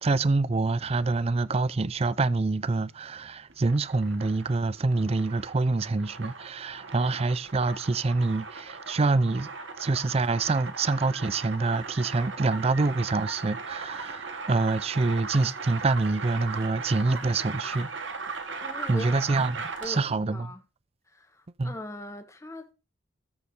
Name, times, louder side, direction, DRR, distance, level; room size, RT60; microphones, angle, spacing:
voice 1, 0.0-9.5 9.8-17.9 18.9-20.5 21.6-21.8, right 3 dB, 30° right, 0.4 m, -26 dB
sound 1, 3.5-20.1, right 4 dB, 70° right, 1.6 m, -38 dB
voice 2, 18.6-19.5 19.8-20.6 21.1-22.7, left 1 dB, 15° left, 1.3 m, -41 dB
13.5 x 4.7 x 4.3 m
head